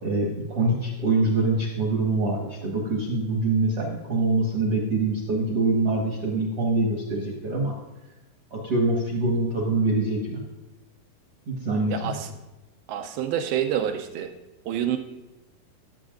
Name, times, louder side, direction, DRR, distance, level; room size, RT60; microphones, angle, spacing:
voice 1, 0.0-7.7 8.5-10.4 11.5-12.1, right 2 dB, 60° right, -3 dB, 1.6 m, -24 dB
voice 2, 11.9-12.3 12.9-14.3 14.7-15.0, right 10 dB, 80° right, 7 dB, 2.3 m, -27 dB
18.0 x 8.0 x 2.5 m, 1.0 s
omnidirectional pair, 4.8 m